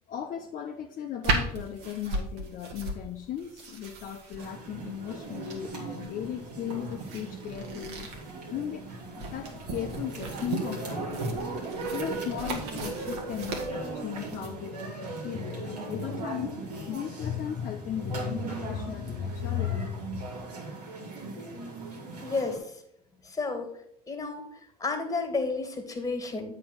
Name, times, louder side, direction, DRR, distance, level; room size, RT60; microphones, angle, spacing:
voice 1, 0.1-8.1 8.5-8.9 9.2-11.3 11.9-20.3, left 9 dB, 45° left, 2 dB, 0.7 m, -36 dB
sound 1, 1.2-14.5, right 3 dB, 65° right, 1.7 m, -37 dB
sound 2, 4.4-22.6, right 3 dB, 85° right, 2.1 m, -38 dB
voice 2, 22.2-22.7 23.2-23.7 24.1-24.5 24.8-26.5, left 3 dB, 15° left, 6 dB, 2.1 m, -31 dB
8.6 x 3.8 x 6.1 m, 0.73 s
hypercardioid pair, 70°, 20 cm